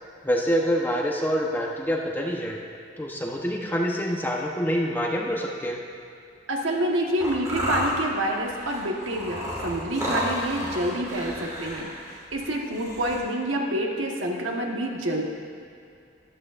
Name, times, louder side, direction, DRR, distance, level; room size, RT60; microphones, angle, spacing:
voice 1, 0.2-2.6 3.0-5.8, equal, 10° left, -1 dB, 0.8 m, -26 dB
voice 2, 6.5-15.2, right 1 dB, 80° right, 0 dB, 1.3 m, -28 dB
sound 1, 7.2-13.2, equal, 15° right, 2.1 m, -32 dB
13.0 x 11.5 x 2.5 m, 2.4 s
head